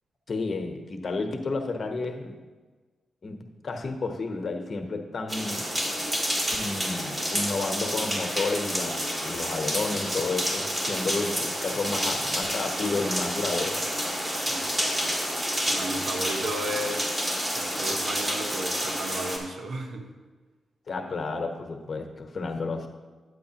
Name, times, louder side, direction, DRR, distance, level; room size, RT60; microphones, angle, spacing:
voice 1, 0.3-2.4 3.2-5.7 6.5-13.8 20.9-22.9, left 3 dB, 50° left, 4 dB, 1.0 m, -31 dB
sound 1, 5.3-19.4, equal, 25° right, 2.1 m, -29 dB
voice 2, 15.7-17.1 17.5-20.1, right 1 dB, 70° right, 4 dB, 1.0 m, -34 dB
9.5 x 8.1 x 2.9 m, 1.4 s
cardioid pair, 65°, 0 cm